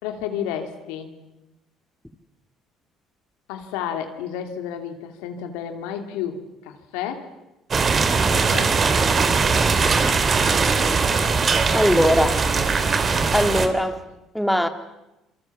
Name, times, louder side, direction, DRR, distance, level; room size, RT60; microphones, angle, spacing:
voice 1, 0.0-1.1 3.5-7.3 8.3-8.8 13.3-13.5, left 9 dB, 85° left, 6 dB, 2.8 m, -31 dB
sound 1, 7.7-13.7, right 4 dB, 40° right, 3.1 m, -20 dB
voice 2, 11.7-12.5 13.3-14.0 14.3-14.7, equal, ahead, 8 dB, 2.4 m, -20 dB
27.5 x 24.0 x 7.4 m, 0.96 s
supercardioid pair, 75°, 0 cm